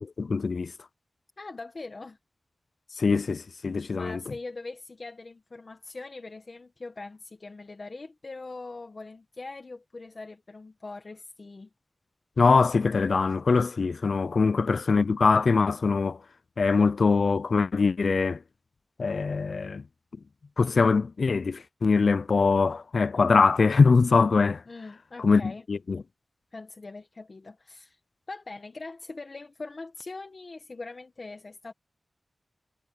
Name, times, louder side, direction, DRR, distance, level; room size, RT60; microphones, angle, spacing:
voice 1, 0.2-0.7 3.0-4.2 12.4-16.2 16.6-18.4 19.0-19.8 20.6-24.6 25.2-26.0, left 4 dB, 65° left, 0.4 m, -23 dB
voice 2, 1.4-2.2 3.9-11.7 24.7-25.6 26.5-28.0 28.3-31.7, left 3 dB, 45° left, 1.3 m, -42 dB
wide cardioid pair, 110°, 0 cm